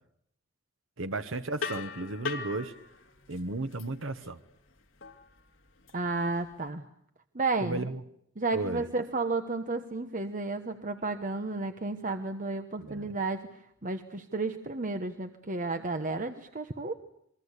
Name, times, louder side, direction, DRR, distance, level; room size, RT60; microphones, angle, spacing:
voice 1, 1.0-2.7 3.3-4.4 7.6-8.0 8.5-8.8 12.8-13.1, right 2 dB, 75° right, 10 dB, 1.2 m, -34 dB
sound 1, 1.6-6.7, left 5 dB, 70° left, 2.5 m, -41 dB
voice 2, 5.9-6.8 7.3-7.9 8.4-16.9, right 3 dB, 40° right, 8 dB, 1.2 m, -32 dB
28.0 x 23.0 x 8.3 m, 0.72 s
head